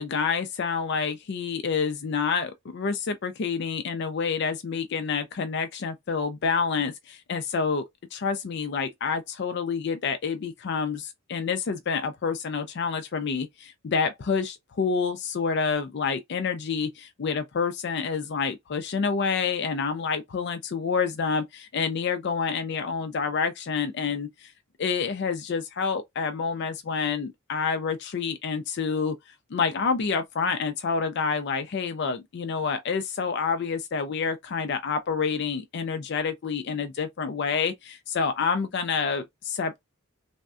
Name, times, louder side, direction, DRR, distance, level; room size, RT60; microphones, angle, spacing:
voice 1, 0.0-7.8 8.1-24.5 24.8-29.2 29.5-39.8, left 5 dB, 55° left, 0.4 m, -28 dB
3.4 x 2.2 x 2.4 m
head